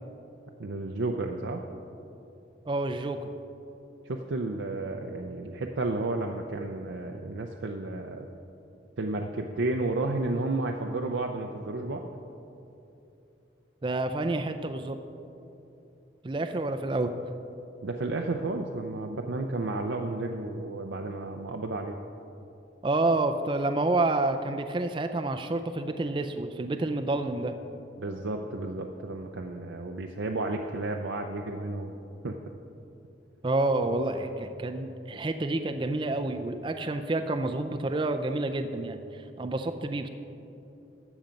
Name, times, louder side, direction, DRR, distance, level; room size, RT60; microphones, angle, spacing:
voice 1, 0.6-1.7 4.1-8.3 9.0-12.0 17.8-22.0 28.0-32.0 32.2-32.4, right 2 dB, 85° right, 2 dB, 0.6 m, -32 dB
voice 2, 2.7-3.2 13.8-15.0 16.2-17.1 22.8-27.6 33.4-40.1, right 2 dB, 25° right, 7 dB, 0.4 m, -29 dB
13.0 x 7.2 x 5.2 m, 2.8 s
head